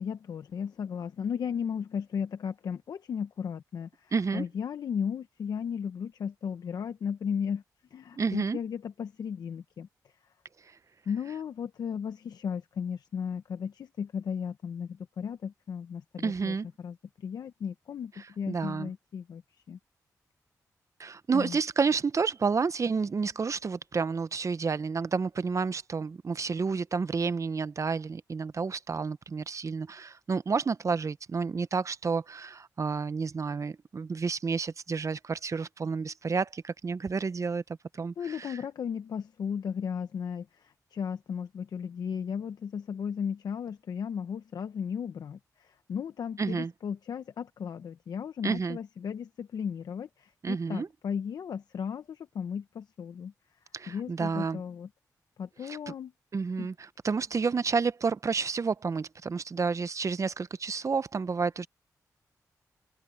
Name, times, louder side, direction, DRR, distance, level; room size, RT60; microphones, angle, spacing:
voice 1, 0.0-7.6 7.9-10.3 11.1-19.4 19.7-19.8 21.3-21.6 38.2-54.9 55.4-56.1 56.6-56.7, left 7 dB, 75° left, 0.9 m, -35 dB
voice 2, 4.1-4.4 8.2-8.6 10.6-10.8 16.2-16.7 18.5-18.9 21.0-37.6 37.9-38.6 46.4-46.7 48.4-48.8 50.4-50.9 53.7-54.6 55.6-55.9 56.3-61.7, right 5 dB, 50° right, 0.9 m, -30 dB
open air
cardioid pair, 55°, 7 cm